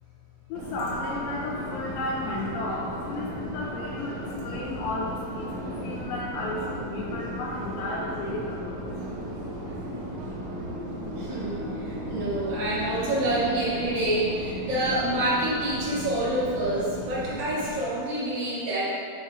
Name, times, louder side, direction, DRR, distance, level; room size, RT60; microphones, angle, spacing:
voice 1, 0.5-8.8, left 2 dB, 85° left, -4 dB, 2.5 m, -33 dB
Subway metro underground, 0.5-17.9, right 1 dB, 65° right, 2.6 m, -35 dB
voice 2, 9.5-10.0 11.1-18.8, right 1 dB, 45° right, -9 dB, 2.8 m, -28 dB
6.4 x 5.6 x 5.1 m, 2.4 s
omnidirectional pair, 4.2 m